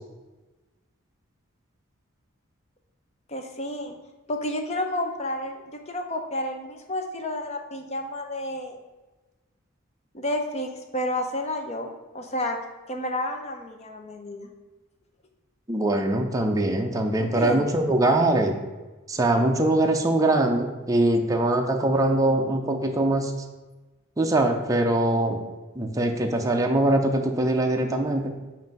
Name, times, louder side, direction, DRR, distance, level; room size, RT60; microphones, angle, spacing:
voice 1, 3.3-3.9 4.3-8.8 10.1-12.6 12.9-14.5 17.2-17.7, left 1 dB, 30° left, 4 dB, 0.6 m, -31 dB
voice 2, 15.7-18.6 19.1-23.3 24.2-25.4 25.8-28.3, right 1 dB, 15° right, 3 dB, 0.5 m, -22 dB
7.6 x 2.6 x 5.2 m, 1.2 s
head